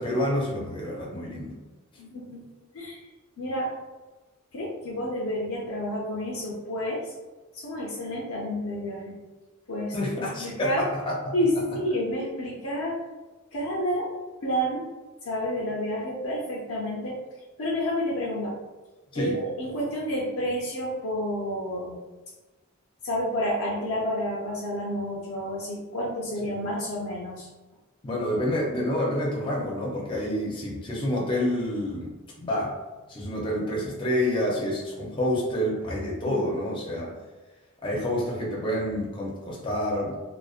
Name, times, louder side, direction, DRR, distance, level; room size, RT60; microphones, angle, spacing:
voice 1, 0.0-1.6 9.9-11.3 19.1-19.4 28.0-32.8 33.1-37.1 37.8-40.2, left 1 dB, 25° left, -3 dB, 0.5 m, -28 dB
voice 2, 2.0-2.4 2.7-3.0 3.4-3.7 4.5-7.1 7.5-9.2 9.7-10.0 10.4-10.8 11.3-13.0 13.5-14.1 14.4-14.8 15.2-17.2 17.6-18.5 19.1-22.0 23.0-27.5 36.2-36.5, equal, 85° left, -4 dB, 0.5 m, -29 dB
2.4 x 2.1 x 2.3 m, 1.2 s
head